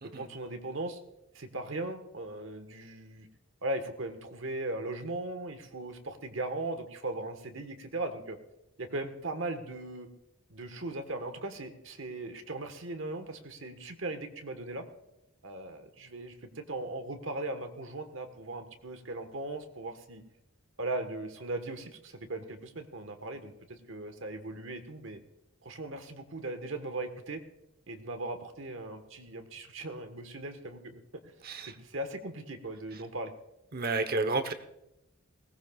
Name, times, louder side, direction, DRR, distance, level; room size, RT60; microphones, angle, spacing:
voice 1, 0.1-1.0 1.3-3.3 3.6-8.4 8.8-10.1 10.5-14.8 15.4-20.2 20.8-25.2 25.6-27.4 27.9-31.0 31.7-33.3, right 2 dB, 65° right, 7 dB, 1.4 m, -38 dB
voice 2, 31.4-31.8 32.9-33.0 33.7-34.5, right 3 dB, 45° right, 9 dB, 1.0 m, -31 dB
20.0 x 18.0 x 2.4 m, 0.86 s
head